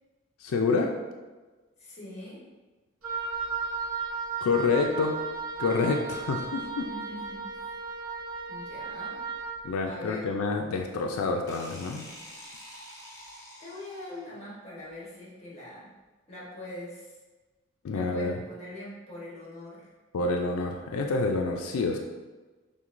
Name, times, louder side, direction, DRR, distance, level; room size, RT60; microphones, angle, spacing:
voice 1, 0.4-1.0 4.4-5.2 5.6-6.9 9.6-12.1 17.8-18.4 20.1-22.0, left 4 dB, 90° left, 2 dB, 0.4 m, -27 dB
voice 2, 1.8-2.4 6.9-7.6 8.5-9.2 9.8-10.3 13.6-15.9 16.3-17.1 17.9-19.9, left 1 dB, 30° left, -6 dB, 1.1 m, -42 dB
Wind instrument woodwind instrument, 3.0-9.6, right 5 dB, 80° right, 0.8 m, -35 dB
sound 1, 11.5-14.4, left 1 dB, 15° left, 0.5 m, -47 dB
5.9 x 2.2 x 2.5 m, 1.3 s
head